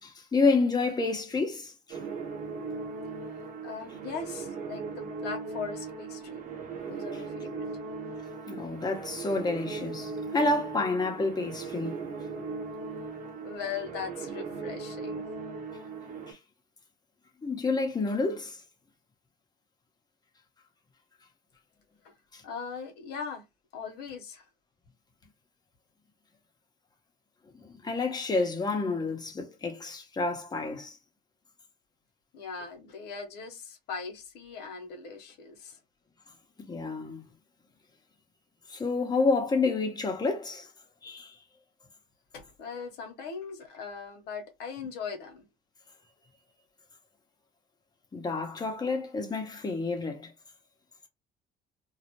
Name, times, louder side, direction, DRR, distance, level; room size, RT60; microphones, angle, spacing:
voice 1, 0.0-2.0 8.5-12.1 16.3-16.4 17.4-18.6 22.3-22.4 27.6-31.0 36.7-37.3 38.7-40.7 41.0-41.3 48.1-50.3, left 3 dB, 25° left, 0.9 m, -29 dB
sound 1, 1.9-16.3, right 4 dB, 55° right, 0.8 m, -38 dB
voice 2, 3.6-6.4 6.9-7.8 13.4-15.3 22.0-22.1 22.4-23.4 23.7-24.5 32.3-35.8 42.3-45.4, left 5 dB, 80° left, 0.8 m, -39 dB
2.4 x 2.0 x 2.9 m
cardioid pair, 110°, 17 cm